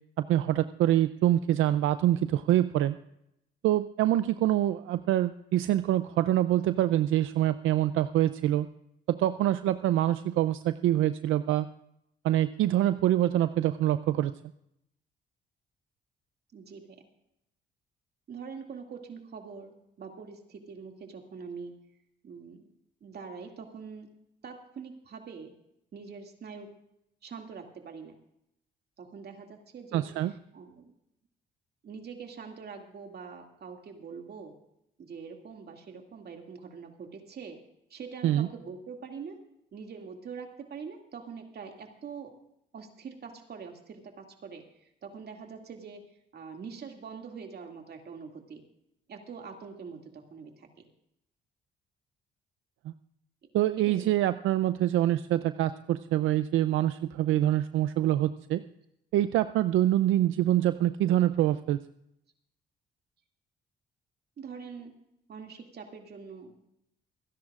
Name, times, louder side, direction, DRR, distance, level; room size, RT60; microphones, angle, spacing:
voice 1, 0.2-3.0 3.6-8.7 9.1-11.7 12.2-14.3 29.9-30.3 38.2-38.5 53.5-58.6 59.1-61.8, right 13 dB, 85° right, 12 dB, 0.5 m, -25 dB
voice 2, 16.5-17.0 18.3-21.7 22.2-22.6 23.0-24.1 24.4-25.5 25.9-26.7 27.2-28.2 29.0-30.9 31.8-34.5 35.0-37.6 37.9-39.4 39.7-42.3 42.7-48.6 49.1-50.9 53.8-54.1 64.4-64.9 65.3-66.6, right 5 dB, 55° right, 3 dB, 2.3 m, -44 dB
27.5 x 10.5 x 2.5 m, 0.80 s
cardioid pair, 90°, 20 cm